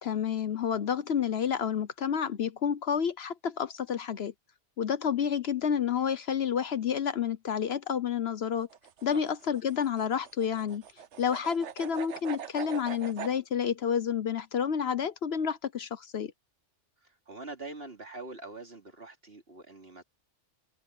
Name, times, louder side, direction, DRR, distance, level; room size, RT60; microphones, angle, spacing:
voice 1, 0.0-4.3 4.8-8.7 9.0-10.8 11.2-16.3, left 7 dB, 60° left, 1.0 m, -30 dB
sound 1, 8.6-13.4, right 8 dB, 70° right, 1.2 m, -42 dB
voice 2, 17.0-20.0, right 2 dB, 55° right, 3.2 m, -44 dB
omnidirectional pair, 1.2 m